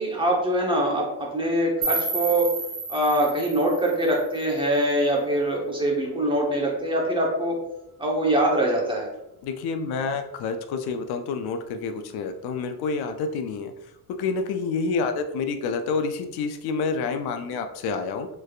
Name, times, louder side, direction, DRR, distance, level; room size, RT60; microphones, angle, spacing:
voice 1, 0.0-2.4 2.9-7.5 8.0-9.1, right 1 dB, 15° right, -2 dB, 0.9 m, -23 dB
sound 1, 1.8-4.8, right 3 dB, 65° right, 1.0 m, -31 dB
voice 2, 9.4-13.7 14.2-18.3, left 4 dB, 85° left, 7 dB, 0.5 m, -28 dB
3.3 x 3.2 x 2.4 m, 0.87 s
cardioid pair, 115°, 37 cm